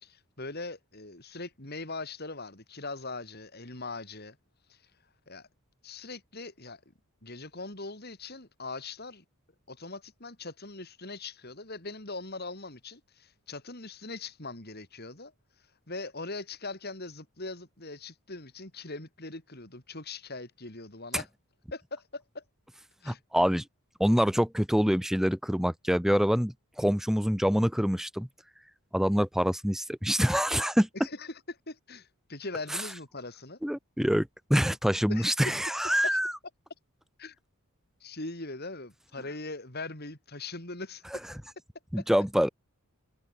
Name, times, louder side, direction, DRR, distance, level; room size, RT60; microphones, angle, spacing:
voice 1, 0.0-4.4 4.7-4.8 5.3-5.5 5.8-6.8 7.2-9.2 9.7-15.3 15.9-21.3 21.7-22.4 23.0-23.2 30.9-33.6 35.1-35.3 36.0-36.2 37.2-37.4 38.0-41.0 42.0-42.1, left 3 dB, 45° left, 4.1 m, -41 dB
voice 2, 23.0-23.6 24.0-28.3 28.9-30.9 33.6-36.3 41.9-42.5, equal, ahead, 1.0 m, -26 dB
head